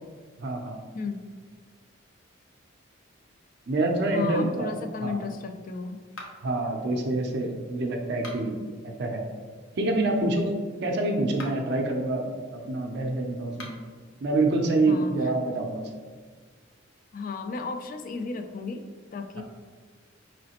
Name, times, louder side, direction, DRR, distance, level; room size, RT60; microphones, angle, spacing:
voice 1, 0.4-0.8 3.7-4.7 5.0-5.2 6.4-8.5 8.8-9.2 9.8-10.5 10.8-12.3 12.5-13.7 14.2-15.8 19.4-19.5, right 2 dB, 55° right, 2 dB, 0.5 m, -26 dB
voice 2, 0.9-1.3 4.1-6.0 14.9-15.3 17.1-19.4, left 4 dB, 40° left, 7 dB, 0.3 m, -34 dB
sound 1, 6.1-6.6 8.1-8.7 11.2-11.8 13.5-14.0, left 2 dB, 80° left, 0.7 m, -43 dB
4.9 x 3.1 x 2.9 m, 1.5 s
head